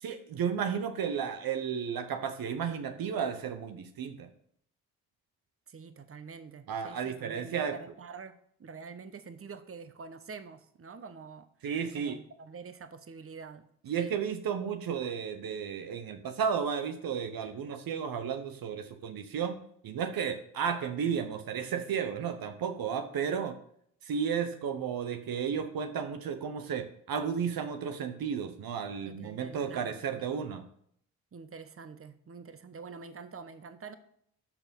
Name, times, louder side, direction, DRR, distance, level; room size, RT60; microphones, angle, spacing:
voice 1, 0.0-4.3 6.7-7.7 11.6-12.2 13.9-19.6 19.8-23.6 24.1-30.6, right 7 dB, 70° right, 8 dB, 1.0 m, -33 dB
voice 2, 5.7-11.5 11.9-13.7 14.0-14.2 29.0-30.0 30.3-30.5 31.3-34.0, right 5 dB, 35° right, 11 dB, 1.1 m, -46 dB
13.0 x 4.6 x 5.3 m, 0.67 s
supercardioid pair, 50°, 37 cm